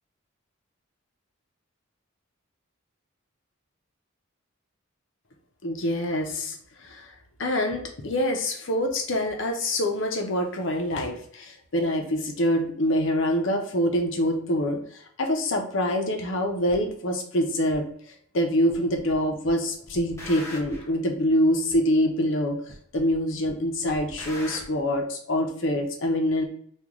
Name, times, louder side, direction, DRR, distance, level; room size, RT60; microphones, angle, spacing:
voice 1, 5.6-7.1 7.4-22.6 22.9-26.4, left 1 dB, 60° left, 3 dB, 0.7 m, -25 dB
sound 1, 16.7-16.8 17.7-17.8 18.7-19.2 19.4-20.9 21.7-21.8 22.7-23.2 23.4-24.7, left 1 dB, 15° left, 0.7 m, -41 dB
3.0 x 2.4 x 3.7 m, 0.62 s
head